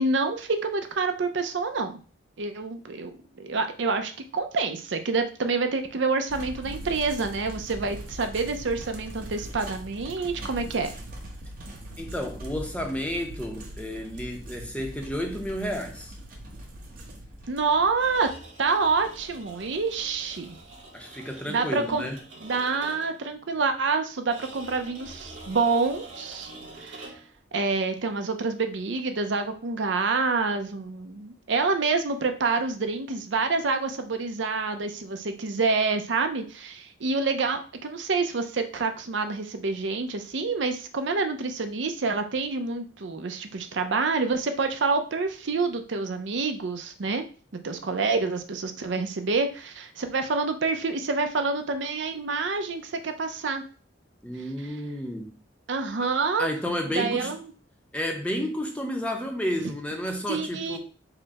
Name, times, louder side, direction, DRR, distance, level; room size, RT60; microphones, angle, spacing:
voice 1, 0.0-2.0 2.4-3.1 3.4-10.9 17.5-18.3 18.6-20.6 21.5-22.1 22.4-26.5 26.8-27.1 27.5-47.3 47.6-53.6 55.7-56.5 56.9-57.5 60.3-60.8, right 4 dB, 70° right, 0.6 m, -27 dB
sound 1, 6.3-20.9, right 1 dB, 50° right, 1.0 m, -41 dB
voice 2, 12.0-16.1 20.9-22.2 54.2-55.4 56.0-56.1 56.4-57.4 57.9-60.8, equal, 5° left, 0.6 m, -31 dB
sound 2, 18.0-23.3 24.3-27.4, right 2 dB, 85° right, 1.6 m, -45 dB
4.8 x 2.1 x 4.7 m
head